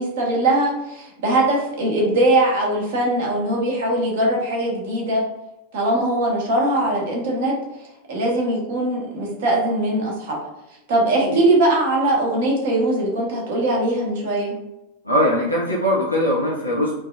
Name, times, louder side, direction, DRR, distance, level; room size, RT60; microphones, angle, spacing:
voice 1, 0.0-5.2 5.7-7.6 8.1-10.4 10.9-14.6, right 1 dB, 55° right, -2 dB, 1.2 m, -21 dB
voice 2, 15.0-17.0, equal, 90° right, -5 dB, 0.7 m, -21 dB
4.5 x 2.6 x 2.4 m, 0.93 s
figure-of-eight pair, 90°, 0 cm